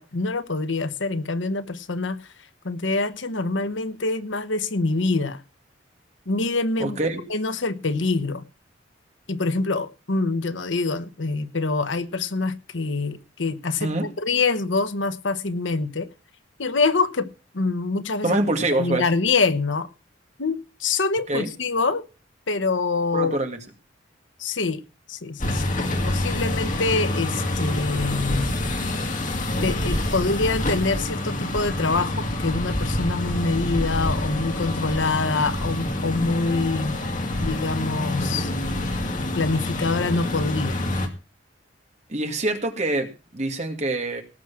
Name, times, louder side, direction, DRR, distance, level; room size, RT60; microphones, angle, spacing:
voice 1, 0.0-2.2 2.6-5.4 6.3-7.0 7.3-8.4 9.3-16.1 16.6-17.3 17.5-18.4 18.8-19.9 20.4-22.0 22.5-23.4 24.4-24.8 25.1-25.8 26.0-28.5 29.6-37.0 37.4-38.5 39.2-40.8, left 3 dB, 85° left, 1.1 m, -25 dB
voice 2, 6.8-7.2 13.8-14.1 18.2-19.1 21.3-21.5 23.1-23.6 42.1-44.2, right 2 dB, 40° right, 2.2 m, -25 dB
sound 1, 25.4-41.1, left 1 dB, 45° left, 2.2 m, -27 dB
18.5 x 6.3 x 5.8 m
head